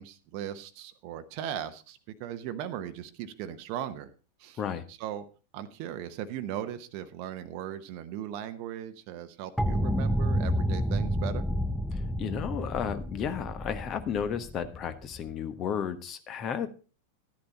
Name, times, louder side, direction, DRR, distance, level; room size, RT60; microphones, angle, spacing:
voice 1, 0.0-4.1 4.4-4.6 4.9-5.2 5.5-11.4, right 10 dB, 45° right, 9 dB, 0.9 m, -38 dB
sound 1, 9.6-15.3, equal, 5° left, 0.6 m, -30 dB
voice 2, 11.9-16.7, left 8 dB, 30° left, 10 dB, 1.3 m, -33 dB
12.0 x 10.5 x 4.0 m, 0.34 s
figure-of-eight pair, 90°, 0 cm